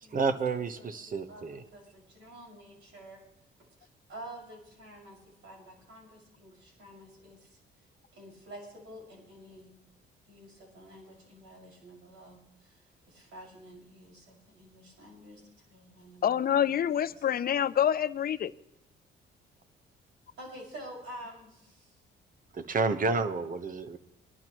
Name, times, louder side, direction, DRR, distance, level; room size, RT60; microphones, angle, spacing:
voice 1, 0.1-1.6 22.5-24.0, right 4 dB, 45° right, 11 dB, 1.1 m, -30 dB
voice 2, 0.8-1.5 1.7-3.2 3.6-3.7 4.1-7.6 8.1-9.7 10.3-15.4 15.7-17.2 20.4-21.9, right 1 dB, 80° right, -2 dB, 5.9 m, -49 dB
voice 3, 16.2-18.5, left 9 dB, 50° left, 14 dB, 0.6 m, -26 dB
21.5 x 11.5 x 3.1 m, 0.87 s
cardioid pair, 90°, 20 cm